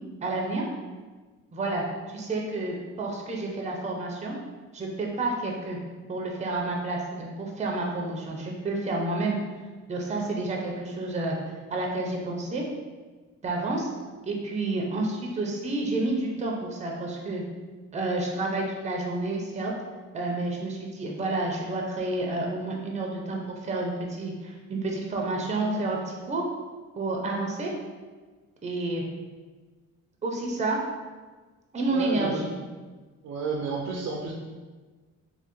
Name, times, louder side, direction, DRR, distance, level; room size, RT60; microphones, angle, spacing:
voice 1, 0.2-0.6 1.5-4.4 4.7-5.8 6.1-9.4 9.9-11.4 11.7-12.6 13.4-13.9 14.2-17.4 17.9-19.7 20.1-26.4 27.0-27.7 28.6-29.0 30.2-30.8 31.7-32.5, right 2 dB, 20° right, 0 dB, 0.6 m, -30 dB
voice 2, 31.9-32.4 33.2-34.3, right 4 dB, 65° right, -2 dB, 0.5 m, -31 dB
3.2 x 2.1 x 3.0 m, 1.3 s
cardioid pair, 85°, 31 cm